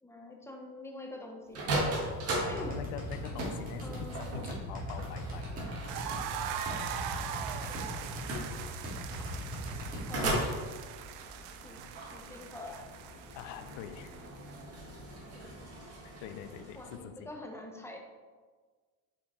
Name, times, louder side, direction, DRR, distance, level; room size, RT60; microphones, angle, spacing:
voice 1, 0.0-1.7 2.5-2.8 3.8-4.5 10.1-10.5 11.6-11.8 12.1-12.9 15.3-15.6 16.7-18.0, left 2 dB, 5° left, 1 dB, 0.8 m, -45 dB
sound 1, 1.5-17.0, right 1 dB, 35° right, 1.6 m, -39 dB
sound 2, 1.8-10.5, equal, 20° right, 1.8 m, -40 dB
voice 2, 2.4-5.6 13.4-14.1 16.0-17.3, left 9 dB, 90° left, 10 dB, 0.6 m, -44 dB
sound 3, 5.9-14.6, right 9 dB, 70° right, 0.6 m, -41 dB
5.7 x 4.5 x 4.3 m, 1.5 s
cardioid pair, 135°, 40 cm